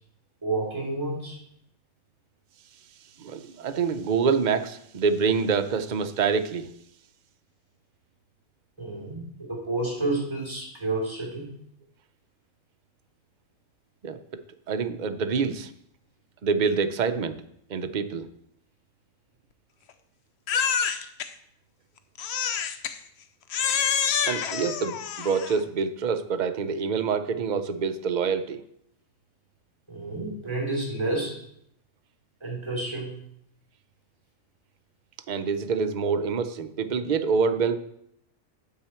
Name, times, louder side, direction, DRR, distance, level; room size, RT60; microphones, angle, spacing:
voice 1, 0.4-1.4 8.8-11.5 29.9-31.4 32.4-33.2, right 2 dB, 20° right, -2 dB, 3.3 m, -30 dB
voice 2, 3.2-6.7 14.0-14.2 14.7-15.7 16.4-17.4 17.7-18.3 24.2-28.6 35.3-37.8, right 5 dB, 45° right, 10 dB, 0.7 m, -26 dB
Crying sobbing, 20.5-21.3 22.2-23.0 23.5-25.6, left 7 dB, 60° left, 0.9 m, -27 dB
9.5 x 7.9 x 4.4 m, 0.71 s
omnidirectional pair, 1.4 m